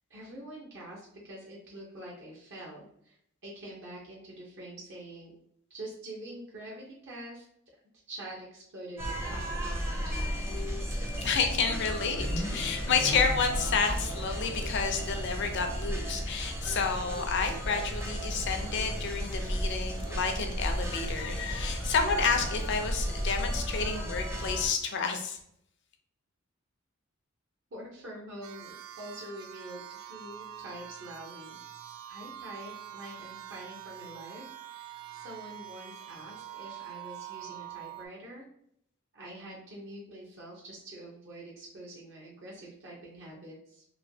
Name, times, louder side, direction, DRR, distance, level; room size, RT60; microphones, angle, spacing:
voice 1, 0.1-3.2 3.4-5.3 5.7-7.5 8.1-10.5 27.7-31.6 32.1-38.4 39.1-43.8, right 1 dB, 60° right, -3 dB, 0.8 m, -45 dB
sound 1, 9.0-24.7, equal, 10° right, 0.5 m, -34 dB
voice 2, 11.2-25.4, left 5 dB, 60° left, 5 dB, 0.5 m, -30 dB
sound 2, 11.7-18.7, left 2 dB, 85° left, 0.8 m, -44 dB
sound 3, 28.4-38.1, right 11 dB, 80° right, 0.3 m, -45 dB
3.0 x 2.8 x 2.7 m, 0.71 s
head